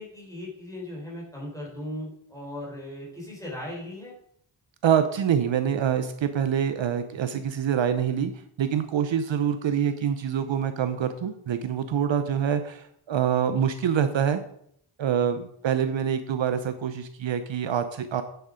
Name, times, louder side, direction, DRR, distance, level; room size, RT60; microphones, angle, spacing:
voice 1, 0.0-4.1, left 1 dB, 5° left, -4 dB, 4.0 m, -38 dB
voice 2, 4.8-8.3 8.6-14.4 15.0-18.2, right 8 dB, 65° right, 10 dB, 0.8 m, -25 dB
9.9 x 6.9 x 5.1 m, 0.68 s
wide cardioid pair, 145°, 49 cm